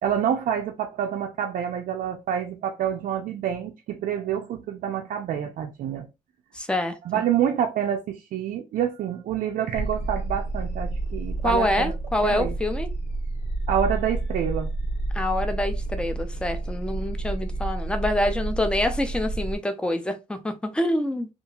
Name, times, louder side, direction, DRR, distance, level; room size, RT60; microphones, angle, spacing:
voice 1, 0.0-6.1 7.1-11.9 12.2-12.6 13.7-14.7, right 9 dB, 75° right, 0.4 m, -27 dB
voice 2, 6.5-7.2 11.4-12.9 15.1-21.3, left 1 dB, 5° left, 0.4 m, -26 dB
sound 1, 9.7-19.6, right 2 dB, 55° left, 0.9 m, -30 dB
2.8 x 2.4 x 2.3 m
wide cardioid pair, 135°, 14 cm